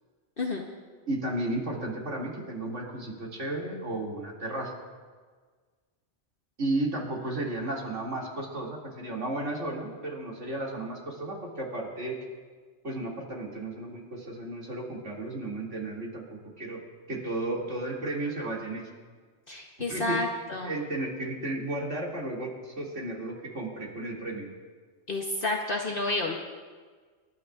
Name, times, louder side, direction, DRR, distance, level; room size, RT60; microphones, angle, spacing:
voice 1, 1.1-4.7 6.6-12.2 12.8-16.8 17.1-18.9 19.9-20.2 20.6-24.5, right 2 dB, 75° right, -3 dB, 2.9 m, -33 dB
voice 2, 19.5-20.8 25.1-26.4, left 2 dB, 50° left, 0 dB, 1.2 m, -30 dB
27.0 x 12.5 x 2.5 m, 1.5 s
omnidirectional pair, 1.2 m